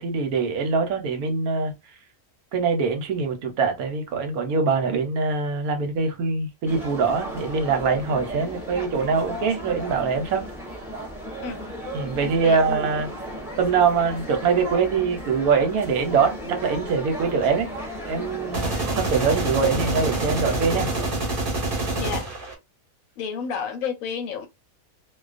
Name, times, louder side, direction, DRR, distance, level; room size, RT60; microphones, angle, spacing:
voice 1, 0.0-1.7 2.5-10.4 11.9-13.1 13.6-17.7 18.1-20.9, right 5 dB, 80° right, 1.1 m, -23 dB
sound 1, 6.7-21.1, equal, ahead, 0.6 m, -35 dB
voice 2, 12.2-12.8 21.9-22.3 23.2-24.5, left 6 dB, 75° left, 0.9 m, -31 dB
sound 2, 18.5-22.5, right 2 dB, 40° right, 1.0 m, -26 dB
2.4 x 2.3 x 2.4 m
omnidirectional pair, 1.5 m